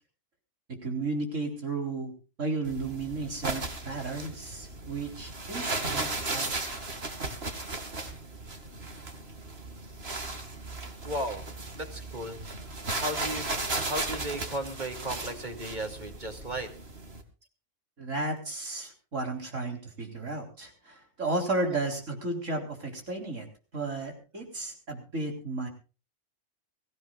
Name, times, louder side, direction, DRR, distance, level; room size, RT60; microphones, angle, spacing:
voice 1, 0.7-2.1 2.4-6.6 18.0-23.5 23.7-25.7, right 2 dB, 85° right, 3 dB, 4.5 m, -33 dB
sound 1, 2.6-17.2, right 3 dB, 55° right, 2.6 m, -36 dB
voice 2, 11.0-11.4 11.7-12.4 13.0-13.5 13.8-16.7, right 1 dB, 40° right, 5 dB, 2.9 m, -35 dB
23.5 x 16.0 x 2.5 m, 0.34 s
omnidirectional pair, 1.3 m